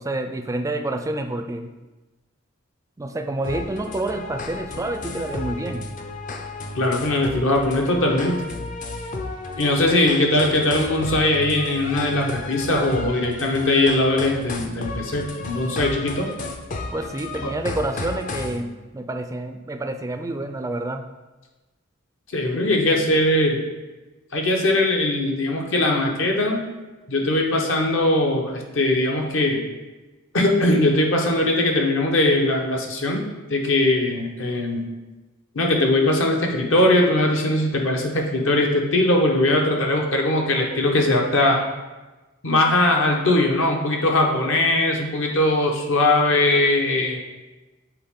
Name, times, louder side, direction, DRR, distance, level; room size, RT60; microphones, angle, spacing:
voice 1, 0.0-1.7 3.0-5.9 16.9-21.0, right 2 dB, 15° right, 7 dB, 0.4 m, -28 dB
sound 1, 3.4-18.6, left 3 dB, 40° left, 0.5 m, -33 dB
voice 2, 6.7-8.4 9.6-16.3 17.4-17.5 22.3-23.6 24.3-26.7 27.1-29.6 30.3-33.2 33.5-34.9 35.5-41.6 42.4-47.2, left 1 dB, 70° left, 1 dB, 1.0 m, -20 dB
7.8 x 4.1 x 3.7 m, 1.2 s
head